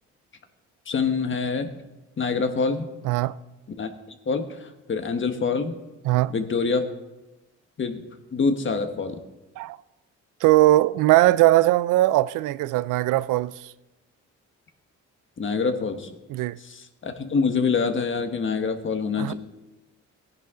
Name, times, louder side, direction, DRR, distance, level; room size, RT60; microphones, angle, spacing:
voice 1, 0.9-1.7 2.2-2.9 3.8-3.9 4.3-5.7 6.3-6.8 7.8-8.0 8.3-9.2 15.4-16.1 16.6-19.3, left 5 dB, 40° left, 1.4 m, -25 dB
voice 2, 3.0-3.4 6.0-6.3 9.6-9.8 10.4-13.7 16.3-16.6 19.2-19.3, right 16 dB, 90° right, 0.5 m, -20 dB
17.0 x 10.5 x 3.8 m
cardioid pair, 90°, 30 cm